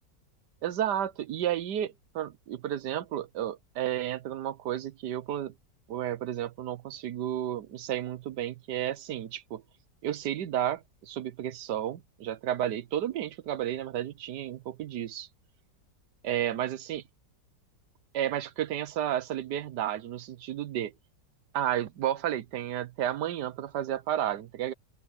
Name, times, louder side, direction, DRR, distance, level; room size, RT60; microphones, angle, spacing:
voice 1, 0.6-5.5 5.9-9.6 10.0-15.3 16.2-17.0 18.1-20.9 21.5-24.7, right 11 dB, 70° right, 1.4 m, -32 dB
open air
omnidirectional pair, 1.9 m